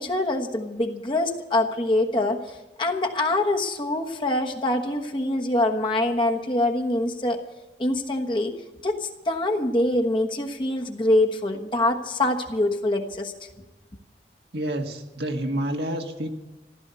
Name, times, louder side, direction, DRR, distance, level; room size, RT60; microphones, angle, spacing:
voice 1, 0.0-7.4 7.8-8.5 8.8-13.3, left 1 dB, 30° left, 3 dB, 1.2 m, -24 dB
voice 2, 14.5-16.3, right 1 dB, 70° right, 3 dB, 1.7 m, -28 dB
15.0 x 13.0 x 6.9 m, 1.1 s
head